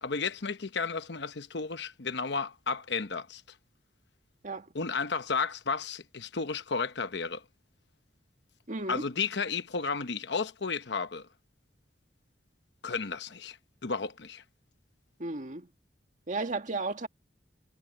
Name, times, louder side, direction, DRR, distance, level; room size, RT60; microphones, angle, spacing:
voice 1, 0.0-3.4 4.7-7.4 8.9-11.3 12.8-13.6 13.8-14.4, left 5 dB, 65° left, 1.0 m, -33 dB
voice 2, 8.7-9.0 15.2-15.7 16.3-17.1, right 3 dB, 45° right, 1.9 m, -34 dB
head